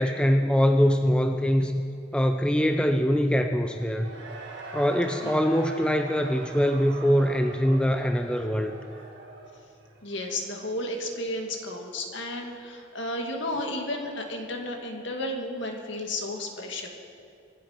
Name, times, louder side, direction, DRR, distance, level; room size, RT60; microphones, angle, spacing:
voice 1, 0.0-1.8 2.1-4.1 4.7-8.8, equal, 5° left, 6 dB, 0.5 m, -23 dB
Cheering / Crowd, 3.7-10.5, right 2 dB, 60° right, 2.1 m, -42 dB
voice 2, 10.0-16.9, left 1 dB, 65° left, 2 dB, 2.0 m, -33 dB
24.5 x 8.5 x 5.8 m, 2.5 s
head